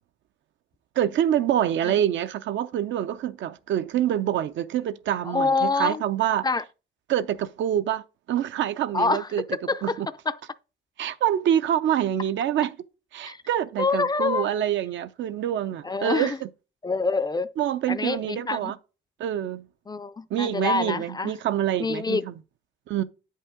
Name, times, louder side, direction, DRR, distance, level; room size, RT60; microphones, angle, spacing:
voice 1, 1.0-6.5 7.1-8.0 8.3-9.4 9.8-10.1 11.0-12.7 13.1-16.3 17.6-18.8 19.2-19.6 20.3-22.3 22.9-23.0, right 10 dB, 70° right, 0.6 m, -26 dB
voice 2, 5.3-6.0 6.4-6.6 8.9-10.0 10.3-10.4 13.2-13.4 13.8-14.5 15.8-16.4 16.8-17.5 17.9-18.7 19.9-21.3 21.8-22.2, left 3 dB, 20° left, 0.4 m, -26 dB
8.5 x 5.5 x 3.6 m
cardioid pair, 90°, 20 cm